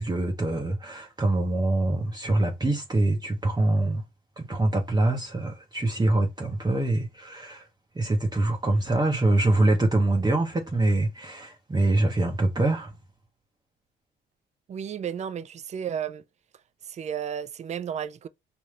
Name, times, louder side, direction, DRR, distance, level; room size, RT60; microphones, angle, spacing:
voice 1, 0.0-4.0 4.4-7.7 7.9-12.9, right 2 dB, 20° right, 0.8 m, -24 dB
voice 2, 14.7-16.2 16.8-18.3, right 8 dB, 35° right, 0.4 m, -33 dB
4.9 x 2.6 x 3.2 m
cardioid pair, 90°, 20 cm